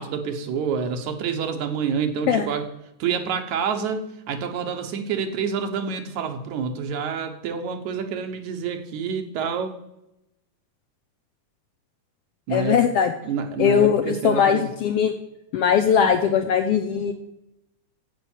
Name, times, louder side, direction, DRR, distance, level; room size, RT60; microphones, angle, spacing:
voice 1, 0.0-2.7 3.0-9.8 12.5-12.8 13.2-14.7, right 6 dB, 75° right, 6 dB, 2.4 m, -28 dB
voice 2, 12.5-13.1 13.6-15.1 15.5-17.1, left 7 dB, 75° left, 7 dB, 1.4 m, -20 dB
9.1 x 8.1 x 7.3 m, 0.85 s
omnidirectional pair, 3.4 m